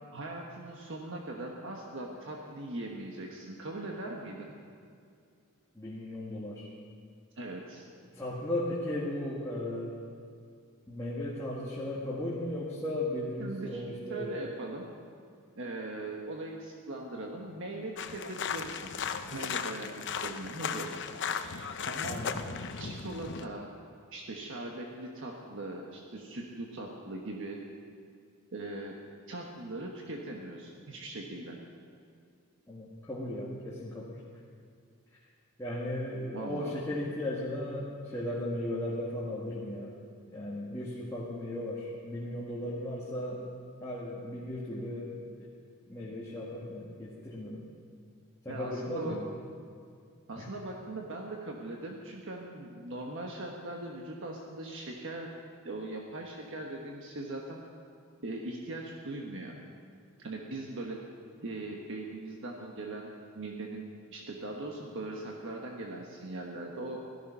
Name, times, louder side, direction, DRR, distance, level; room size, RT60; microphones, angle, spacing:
voice 1, 0.1-4.5 7.4-7.9 13.4-13.8 14.1-14.8 15.5-19.0 19.3-20.9 21.4-22.2 22.8-23.7 24.1-27.6 28.5-29.0 29.3-31.6 36.3-36.8 48.5-49.2 50.3-55.3 55.6-57.6 58.2-59.6 60.2-61.0 61.4-67.0, right 2 dB, 60° right, 0 dB, 1.4 m, -40 dB
voice 2, 5.7-6.7 8.1-9.9 10.9-14.4 22.1-22.4 32.7-34.2 35.6-39.9 40.3-43.4 43.8-45.5 45.9-47.7 48.4-49.2 50.3-50.5, left 1 dB, 15° left, -6 dB, 1.9 m, -36 dB
sound 1, 18.0-23.5, left 6 dB, 55° left, 0.7 m, -36 dB
16.5 x 13.5 x 5.6 m, 2.3 s
head